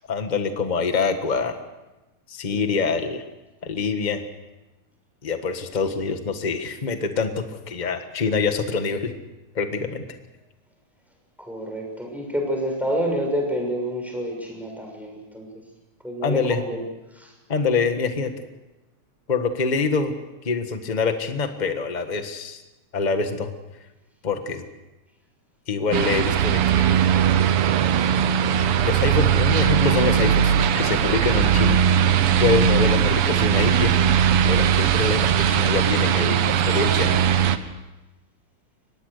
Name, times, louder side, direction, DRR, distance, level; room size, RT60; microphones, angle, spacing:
voice 1, 0.1-1.6 2.3-3.2 3.6-4.2 5.2-9.1 9.5-10.1 16.2-16.6 17.5-18.3 19.3-20.1 20.4-22.6 22.9-23.5 24.2-24.6 25.7-27.0 28.8-31.8 32.4-33.9 34.4-37.2, left 4 dB, 35° left, 7 dB, 0.7 m, -25 dB
voice 2, 2.5-3.0 11.4-15.5 16.0-16.8 17.1-17.3, equal, ahead, 1 dB, 6.4 m, -28 dB
sound 1, 25.9-37.6, right 8 dB, 65° right, 1.5 m, -19 dB
24.0 x 20.0 x 6.7 m, 1.0 s
omnidirectional pair, 3.5 m